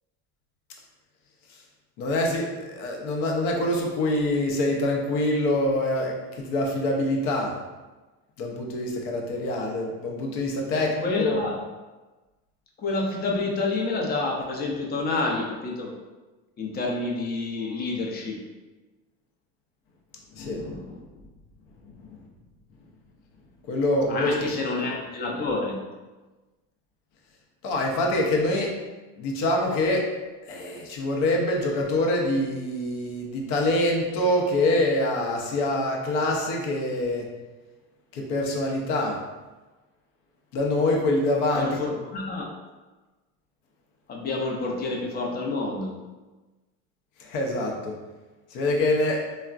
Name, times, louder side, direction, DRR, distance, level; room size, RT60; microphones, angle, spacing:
voice 1, 2.0-7.5 8.4-11.4 20.3-20.7 22.0-22.2 23.6-24.3 27.6-28.8 29.2-30.1 30.5-37.3 38.1-39.2 40.5-41.7 47.2-48.0 48.5-49.2, left 1 dB, 75° left, 0 dB, 0.7 m, -25 dB
voice 2, 10.7-11.7 12.8-16.0 16.6-18.5 20.5-21.2 24.1-25.8 41.5-42.6 44.1-46.0, left 3 dB, 30° left, 0 dB, 0.5 m, -29 dB
3.4 x 2.1 x 2.4 m, 1.2 s
cardioid pair, 130°, 32 cm